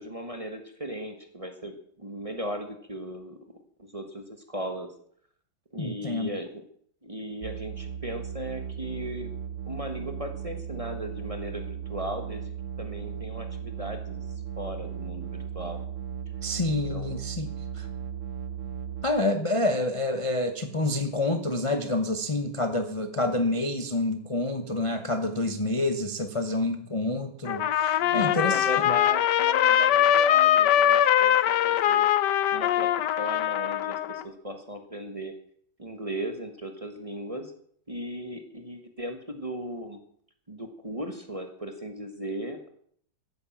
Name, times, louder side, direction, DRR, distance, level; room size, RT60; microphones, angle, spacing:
voice 1, 0.0-3.4 3.8-4.9 5.7-6.6 7.0-9.3 9.7-12.5 12.8-14.2 14.6-15.8 16.7-17.2 28.0-32.1 32.5-35.3 35.8-37.5 37.9-40.0 40.5-42.7, equal, 20° right, 6 dB, 1.3 m, -37 dB
voice 2, 5.8-6.3 16.4-17.5 17.8-17.9 19.0-28.7, left 2 dB, 20° left, 6 dB, 0.8 m, -28 dB
sound 1, 7.4-19.1, right 8 dB, 50° right, 1.1 m, -36 dB
Trumpet, 27.5-34.2, left 11 dB, 70° left, 1.3 m, -22 dB
15.0 x 9.8 x 7.3 m, 0.64 s
omnidirectional pair, 2.0 m